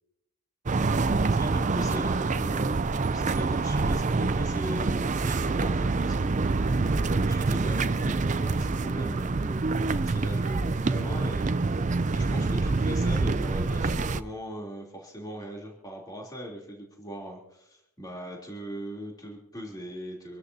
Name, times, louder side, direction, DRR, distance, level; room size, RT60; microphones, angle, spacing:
sound 1, 0.7-14.2, right 3 dB, 35° right, 0.5 m, -26 dB
voice 1, 1.3-11.7 12.1-20.4, equal, 15° left, -2 dB, 3.4 m, -40 dB
27.0 x 13.0 x 2.8 m, 0.78 s
head